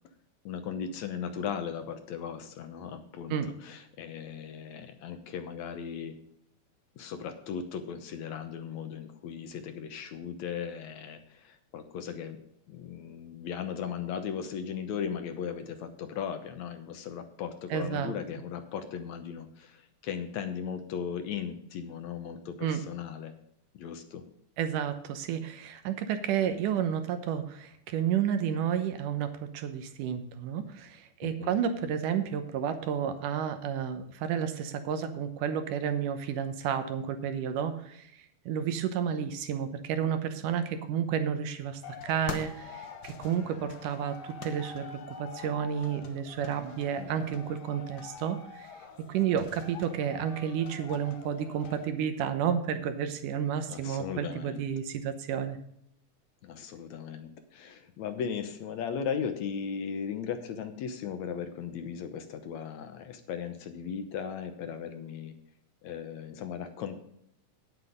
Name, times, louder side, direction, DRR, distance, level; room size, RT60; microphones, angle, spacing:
voice 1, 0.5-3.4 3.6-6.2 7.0-12.4 12.7-23.3 23.7-24.2 31.2-31.5 47.0-47.3 53.7-54.6 56.4-65.3 65.8-67.0, left 7 dB, 70° left, 7 dB, 2.2 m, -37 dB
voice 2, 17.7-18.1 22.6-22.8 24.6-38.0 38.5-48.7 49.1-55.6, right 8 dB, 90° right, 9 dB, 2.6 m, -31 dB
sound 1, 41.8-51.9, left 6 dB, 90° left, 0.9 m, -44 dB
9.7 x 8.0 x 5.2 m, 0.72 s
omnidirectional pair, 3.5 m